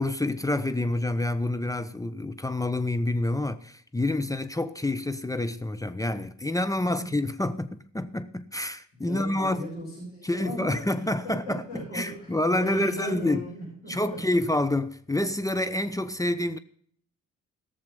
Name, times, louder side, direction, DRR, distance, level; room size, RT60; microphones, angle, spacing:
voice 1, 0.0-9.7 10.2-13.4 13.9-16.6, left 1 dB, 10° left, 0.7 m, -28 dB
voice 2, 8.9-11.1 11.7-14.2, equal, 80° left, 6.3 m, -37 dB
17.0 x 6.8 x 5.3 m
figure-of-eight pair, 40°, 40 cm